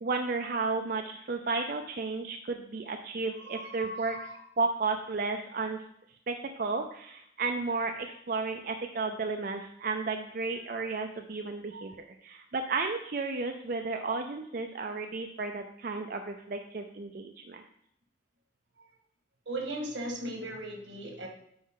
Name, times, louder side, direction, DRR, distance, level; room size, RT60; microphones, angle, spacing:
voice 1, 0.0-4.2 4.6-5.8 6.3-17.6, right 4 dB, 50° right, 5 dB, 0.4 m, -33 dB
voice 2, 3.4-4.4 11.7-11.9 19.5-21.3, right 1 dB, 80° right, 2 dB, 1.6 m, -38 dB
9.5 x 4.7 x 3.7 m, 0.72 s
head